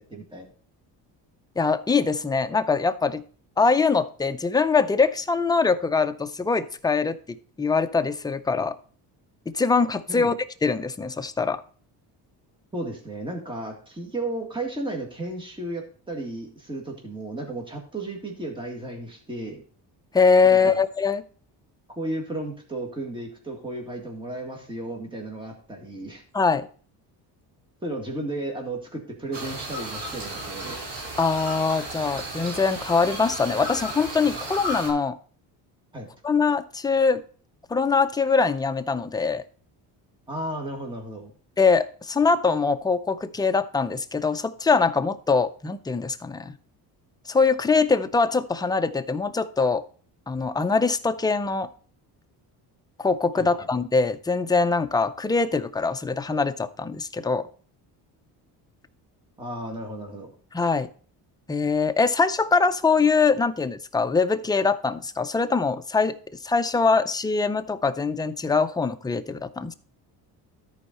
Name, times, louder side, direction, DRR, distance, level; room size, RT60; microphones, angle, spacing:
voice 1, 0.1-0.5 10.1-10.3 12.7-19.6 20.4-20.8 21.9-26.2 27.8-30.8 35.9-36.1 40.3-41.3 53.3-53.5 59.4-60.3, right 2 dB, 10° right, 1 dB, 2.0 m, -34 dB
voice 2, 1.6-3.2 3.6-8.8 9.5-10.3 10.6-11.6 20.1-21.2 26.3-26.7 31.2-35.2 36.2-37.2 37.7-39.4 41.6-46.5 47.3-49.8 50.3-51.7 53.0-57.5 60.5-60.9 61.5-66.2 66.4-69.7, left 4 dB, 10° left, 9 dB, 0.4 m, -23 dB
sound 1, 29.3-34.9, right 1 dB, 75° right, 3.5 m, -34 dB
13.5 x 4.6 x 4.1 m, 0.42 s
cardioid pair, 115°, 41 cm